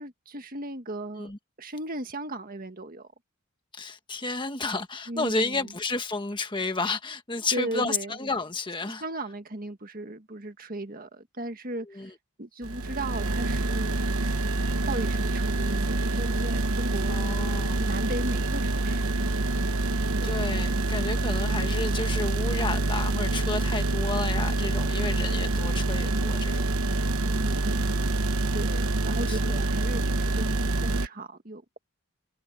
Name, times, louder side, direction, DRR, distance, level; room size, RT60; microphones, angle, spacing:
voice 1, 0.0-1.3 1.6-3.1 5.1-5.7 7.5-8.1 8.8-12.1 12.4-14.0 14.9-17.2 17.5-19.2 20.1-20.4 27.2-28.1 28.5-31.8, right 1 dB, 40° right, 1.7 m, -36 dB
voice 2, 3.7-9.0 11.9-12.1 17.1-17.9 20.2-26.6 29.3-29.6, left 3 dB, 20° left, 1.4 m, -31 dB
sound 1, 12.6-31.1, right 2 dB, 75° right, 1.1 m, -26 dB
head